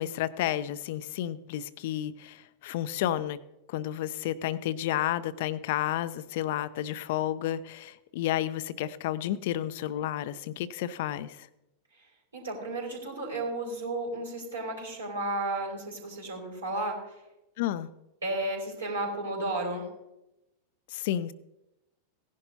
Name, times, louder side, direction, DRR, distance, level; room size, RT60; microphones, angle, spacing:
voice 1, 0.0-3.4 3.7-11.5 17.6-17.9 20.9-21.3, left 12 dB, 50° left, 16 dB, 0.5 m, -31 dB
voice 2, 12.3-17.0 18.2-19.9, right 2 dB, 70° right, -2 dB, 4.2 m, -33 dB
17.5 x 11.0 x 2.8 m, 0.93 s
figure-of-eight pair, 90°, 0 cm